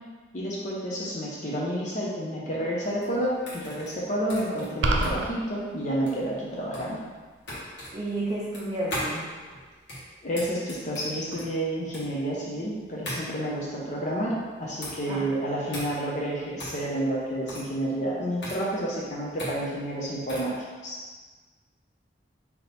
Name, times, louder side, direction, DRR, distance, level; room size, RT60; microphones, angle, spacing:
voice 1, 0.3-7.0 10.2-14.3 14.6-20.5 20.8-21.0, right 1 dB, 40° left, -5 dB, 0.6 m, -30 dB
sound 1, 2.8-20.6, left 1 dB, 75° left, 1.4 m, -39 dB
sound 2, 4.8-5.3, right 2 dB, 80° right, 0.4 m, -24 dB
voice 2, 7.9-9.3 15.1-15.2, right 1 dB, 25° right, -8 dB, 0.6 m, -31 dB
3.6 x 2.9 x 4.0 m, 1.4 s
head